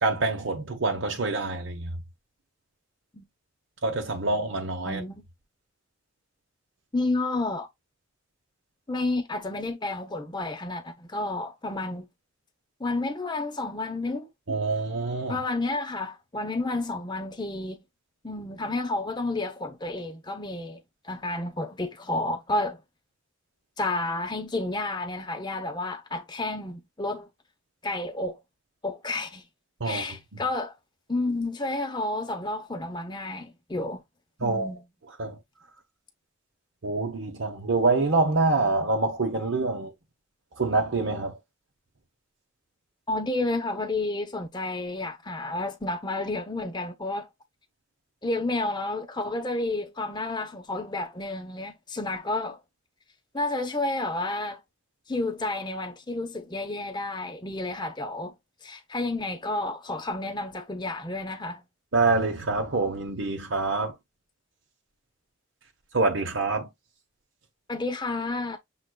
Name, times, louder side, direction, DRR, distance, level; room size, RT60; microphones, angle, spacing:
voice 1, 0.0-2.0 3.8-5.0 14.5-15.4 29.8-30.0 30.3-30.4 34.4-34.7 35.2-35.4 36.8-39.9 40.6-41.4 61.9-63.9 65.9-66.7, right 3 dB, 70° right, 0.9 m, -26 dB
voice 2, 4.8-5.2 6.9-7.7 8.9-12.1 12.8-14.3 15.3-17.8 18.2-22.8 23.8-27.3 27.8-28.4 28.8-29.4 29.8-30.7 31.1-34.0 34.4-34.8 43.1-47.3 48.2-52.6 53.3-54.6 55.1-58.4 58.6-61.6 67.7-68.6, left 2 dB, 20° left, 0.8 m, -31 dB
6.3 x 3.7 x 2.2 m
head